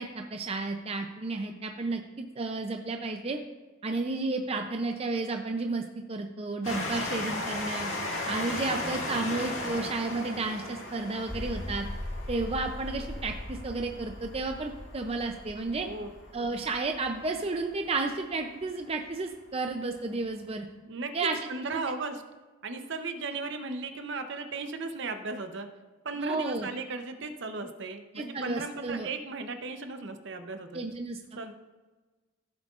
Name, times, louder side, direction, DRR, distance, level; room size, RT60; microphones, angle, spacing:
voice 1, 0.0-2.0 2.4-3.4 3.8-7.9 8.3-11.9 12.3-15.9 16.3-20.7 21.1-21.8 26.2-26.7 28.1-29.1 30.7-31.2, right 3 dB, 30° right, 4 dB, 0.5 m, -32 dB
Train, 6.6-17.8 18.5-18.6 18.9-19.0, left 2 dB, 65° left, 1.9 m, -37 dB
sound 1, 11.1-17.6, left 1 dB, 15° left, 1.6 m, -40 dB
voice 2, 15.8-16.1 20.8-22.2 22.6-25.7 26.0-30.8 31.4-31.5, right 3 dB, 60° right, 7 dB, 0.8 m, -36 dB
15.5 x 7.5 x 2.5 m, 1.2 s
head